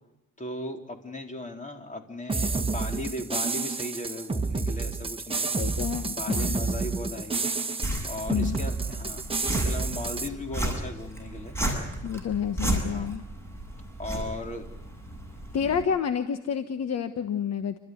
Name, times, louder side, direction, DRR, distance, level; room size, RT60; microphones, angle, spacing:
voice 1, 0.4-5.7 6.1-7.5 8.0-11.8 12.9-13.1 14.0-14.7 15.8-15.9, left 1 dB, 25° left, 4 dB, 3.8 m, -37 dB
sound 1, 2.3-10.3, right 3 dB, 20° right, 1.5 m, -29 dB
voice 2, 5.6-6.6 8.3-8.6 12.0-13.2 15.5-17.8, left 8 dB, 55° left, 9 dB, 1.3 m, -29 dB
sound 2, 7.8-15.8, right 1 dB, 10° left, 7.5 m, -34 dB
30.0 x 13.5 x 9.3 m, 0.93 s
cardioid pair, 90°, 30 cm